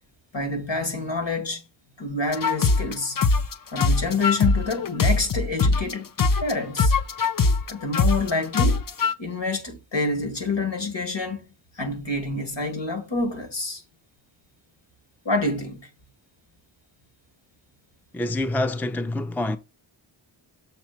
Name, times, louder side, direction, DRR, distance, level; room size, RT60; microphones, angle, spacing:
voice 1, 0.3-1.6 2.0-3.2 3.7-6.1 6.4-6.9 7.7-8.8 9.2-11.4 11.8-13.8 15.2-15.9, left 3 dB, 60° left, 2.2 m, -27 dB
sound 1, 2.3-5.9 6.2-9.1, left 3 dB, 45° left, 0.7 m, -21 dB
voice 2, 18.1-19.6, left 1 dB, 5° left, 0.5 m, -26 dB
7.1 x 3.1 x 5.9 m
wide cardioid pair, 55°, 49 cm